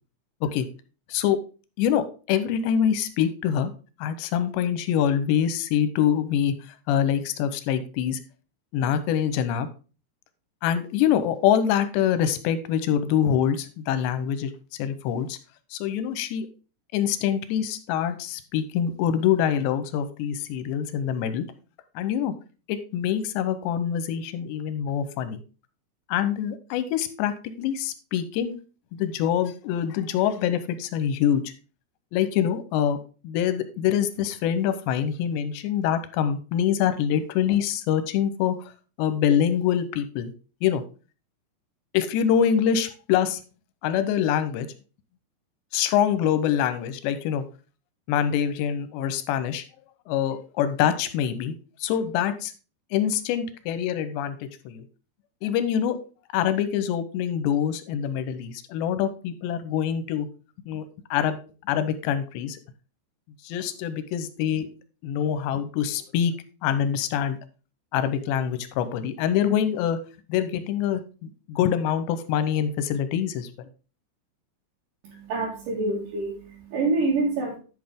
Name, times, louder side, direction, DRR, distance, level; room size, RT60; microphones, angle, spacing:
voice 1, 1.8-3.7 4.0-6.5 6.9-8.2 8.7-9.7 10.6-15.4 15.7-16.5 16.9-21.5 22.0-22.3 22.7-25.4 26.1-28.5 28.9-31.5 32.1-33.0 33.2-38.6 39.0-40.3 40.6-40.8 41.9-43.4 43.8-44.7 45.7-47.4 48.1-49.6 50.1-51.5 51.8-52.5 52.9-54.8 55.4-56.0 56.3-60.3 60.7-61.4 61.7-62.6 63.4-64.7 65.0-66.3 66.6-67.4 67.9-70.0 70.3-73.5, left 9 dB, 85° left, 12 dB, 3.0 m, -25 dB
voice 2, 75.0-77.6, right 3 dB, 60° right, -4 dB, 3.1 m, -26 dB
11.0 x 5.7 x 3.6 m, 0.35 s
omnidirectional pair, 4.9 m